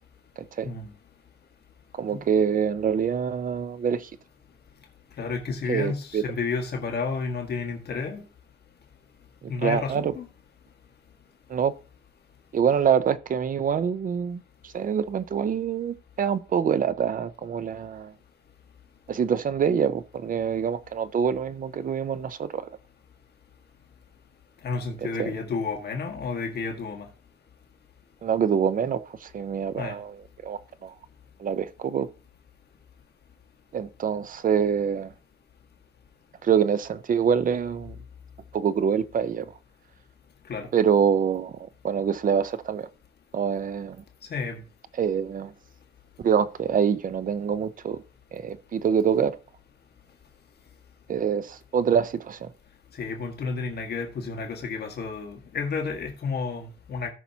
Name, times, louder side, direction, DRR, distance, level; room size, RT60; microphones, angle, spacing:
voice 1, 2.0-4.1 5.7-6.2 9.6-10.1 11.5-11.7 12.5-14.4 14.7-18.1 19.1-22.7 25.2-25.3 28.2-30.2 30.4-30.9 31.4-32.1 33.7-35.1 36.4-38.0 38.5-39.5 40.7-41.6 41.8-42.9 43.3-44.0 45.0-45.5 46.2-48.0 48.3-49.4 51.1-52.5, right 7 dB, 45° right, 0.6 m, -25 dB
voice 2, 5.2-8.2 9.5-10.3 24.6-27.1 29.8-30.0 40.5-40.7 44.3-44.6 53.0-57.1, left 4 dB, 55° left, 1.6 m, -31 dB
17.5 x 5.8 x 2.8 m
wide cardioid pair, 160°, 20 cm